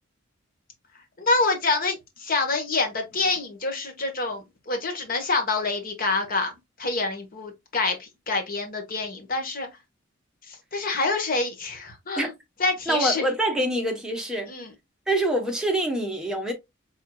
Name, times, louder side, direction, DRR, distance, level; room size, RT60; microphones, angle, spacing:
voice 1, 1.2-6.5 6.8-9.7 10.5-12.3 12.6-13.3 14.5-14.7, left 3 dB, 45° left, 1.1 m, -26 dB
voice 2, 12.9-14.5 15.1-16.5, right 1 dB, 5° right, 0.9 m, -25 dB
4.4 x 3.6 x 2.2 m
head